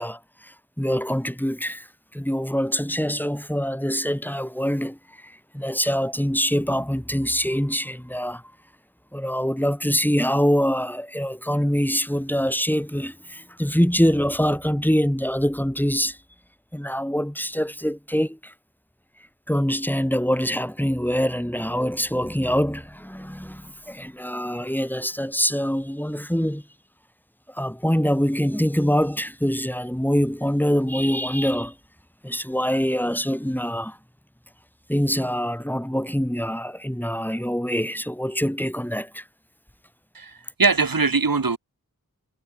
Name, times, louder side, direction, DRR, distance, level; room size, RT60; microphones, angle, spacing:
voice 1, 0.0-8.4 9.1-16.2 16.7-18.5 19.5-26.6 27.5-31.8 32.2-34.0 34.9-39.2, equal, 5° left, 7.9 m, -24 dB
voice 2, 40.1-41.6, right 4 dB, 85° right, 4.7 m, -21 dB
wide cardioid pair, 65°, 34 cm